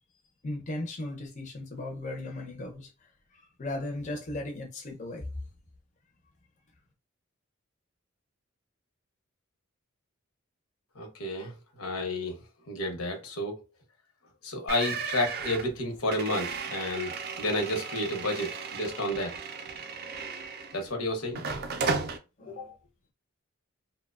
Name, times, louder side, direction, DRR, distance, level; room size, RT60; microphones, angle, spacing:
voice 1, 0.4-2.9 3.3-5.3 22.4-22.8, left 2 dB, 35° left, 0.5 m, -37 dB
voice 2, 11.0-12.3 12.7-13.6 14.4-19.3 20.7-21.4 22.4-22.5, left 1 dB, 85° left, 0.8 m, -31 dB
sound 1, 14.7-20.9 21.4-22.2, right 4 dB, 45° right, 0.3 m, -35 dB
2.8 x 2.1 x 2.3 m
head